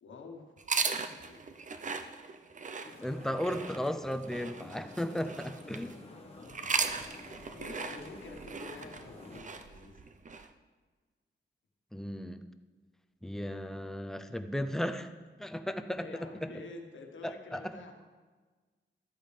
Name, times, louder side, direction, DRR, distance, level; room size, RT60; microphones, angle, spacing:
voice 1, 0.0-1.4 6.1-6.7 7.0-10.0 16.0-17.9, left 4 dB, 85° left, 3 dB, 1.3 m, -49 dB
sound 1, 0.6-5.9 6.4-10.5, right 5 dB, 40° right, 0.6 m, -37 dB
sound 2, 2.8-9.4, left 2 dB, 30° left, 1.2 m, -51 dB
voice 2, 3.0-6.0 11.9-12.4 13.2-15.1 15.4-16.5 17.2-17.6, equal, ahead, 8 dB, 0.5 m, -35 dB
13.0 x 8.6 x 3.3 m, 1.4 s
wide cardioid pair, 100°, 19 cm